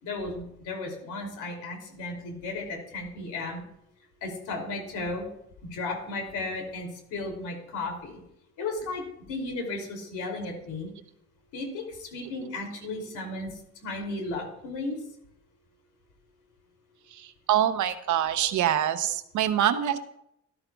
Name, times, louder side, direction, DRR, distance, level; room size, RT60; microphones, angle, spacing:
voice 1, 0.0-3.6 4.2-5.2 5.6-8.2 8.6-9.0 9.3-10.9 11.5-13.5 13.8-15.0, left 2 dB, 85° left, 2 dB, 2.9 m, -34 dB
voice 2, 17.1-20.0, right 10 dB, 75° right, 10 dB, 0.9 m, -25 dB
13.0 x 12.0 x 2.4 m, 0.77 s
cardioid pair, 90°, 30 cm